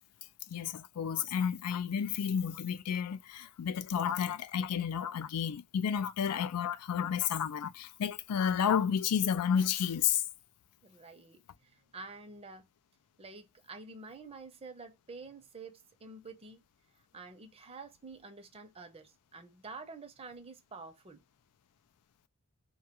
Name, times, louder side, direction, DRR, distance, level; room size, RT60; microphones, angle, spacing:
voice 1, 0.5-10.2, left 8 dB, 80° left, 0.4 m, -31 dB
voice 2, 10.8-12.7 13.2-16.6 17.1-21.2, right 3 dB, 25° right, 0.6 m, -49 dB
2.3 x 2.2 x 2.8 m
head